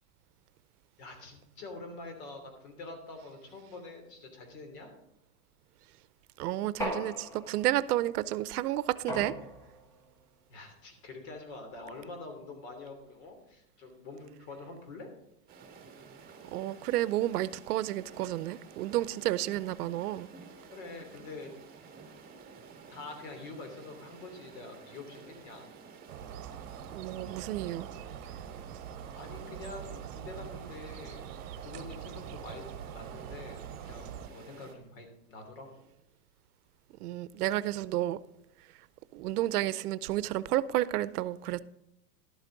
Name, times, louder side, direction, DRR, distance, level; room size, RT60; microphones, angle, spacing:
voice 1, 1.0-4.9 10.5-15.1 20.7-21.5 22.9-25.7 29.1-31.2 31.6-32.6 32.9-35.8, left 3 dB, 55° left, 3.1 m, -46 dB
voice 2, 6.4-9.3 16.4-20.3 26.9-27.9 37.0-38.2 39.1-41.6, right 14 dB, 85° right, 0.7 m, -31 dB
sound 1, 6.8-7.8 9.1-9.9, equal, 5° left, 0.4 m, -37 dB
sound 2, 15.5-34.7, right 5 dB, 20° right, 1.8 m, -52 dB
sound 3, 26.1-34.3, right 9 dB, 60° right, 0.9 m, -44 dB
12.0 x 8.2 x 3.9 m
supercardioid pair, 150°, 44 cm